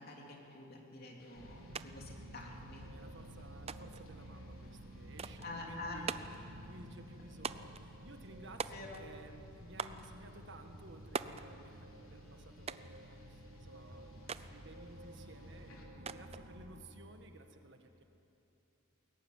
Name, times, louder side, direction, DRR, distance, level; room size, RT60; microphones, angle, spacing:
voice 1, 0.0-2.8 5.4-6.0 8.7-9.0, left 2 dB, 45° left, 0 dB, 3.6 m, -47 dB
sound 1, 1.2-15.8, left 2 dB, 80° left, 3.5 m, -67 dB
sound 2, 1.3-16.8, equal, 80° right, 2.7 m, -52 dB
sound 3, 1.7-1.9 2.1-2.9 3.7-4.1 5.2-5.5 6.1-6.4 7.4-7.8 8.6-9.1 9.8-10.1 11.1-11.5 12.7-13.0 14.3-14.5 16.1-16.5, right 5 dB, 30° right, 0.5 m, -41 dB
voice 2, 2.9-6.1 6.5-18.0, right 2 dB, 55° right, 5 dB, 1.7 m, -56 dB
21.5 x 18.0 x 9.7 m, 2.9 s
head